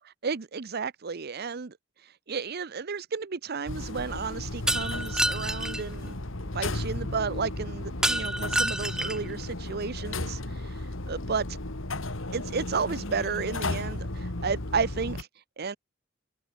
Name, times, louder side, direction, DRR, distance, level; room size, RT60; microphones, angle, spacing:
voice 1, 0.2-1.7 2.0-6.2 6.5-11.4 12.3-15.3 15.6-15.8, right 5 dB, 55° right, 0.7 m, -32 dB
sound 1, 3.7-15.2, left 2 dB, 80° left, 2.4 m, -34 dB
Shatter, 4.7-5.8 8.0-9.3, right 1 dB, 5° right, 0.4 m, -28 dB
head